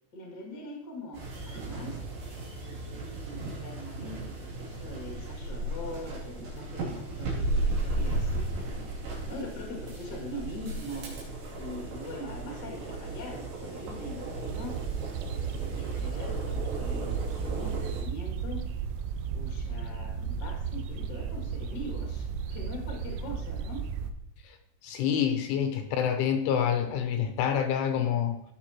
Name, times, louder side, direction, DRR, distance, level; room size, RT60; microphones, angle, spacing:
voice 1, 0.1-2.0 2.6-8.9 9.3-11.1 11.6-14.8 15.2-18.6 19.3-23.8, left 1 dB, 40° left, -2 dB, 1.4 m, -42 dB
sound 1, 1.1-18.0, right 2 dB, 60° right, 4.7 m, -35 dB
sound 2, 14.5-24.1, right 6 dB, 90° right, 3.3 m, -34 dB
voice 2, 24.8-28.4, left 8 dB, 80° left, 6 dB, 3.0 m, -27 dB
16.5 x 6.9 x 2.9 m, 0.80 s
omnidirectional pair, 5.9 m